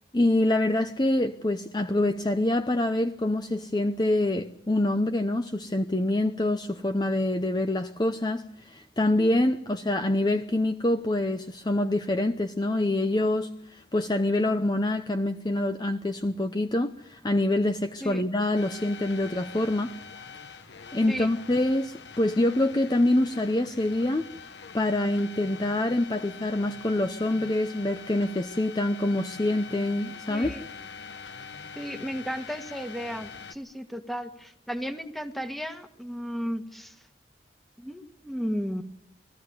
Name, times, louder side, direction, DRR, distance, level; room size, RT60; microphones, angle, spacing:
voice 1, 0.1-19.9 20.9-24.3 24.7-30.5, left 1 dB, 25° left, 8 dB, 0.7 m, -26 dB
sound 1, 18.5-33.5, left 6 dB, 85° left, 1.1 m, -44 dB
voice 2, 30.3-30.6 31.7-37.0 37.8-38.8, equal, ahead, 7 dB, 1.5 m, -34 dB
22.0 x 14.5 x 9.5 m, 0.79 s
head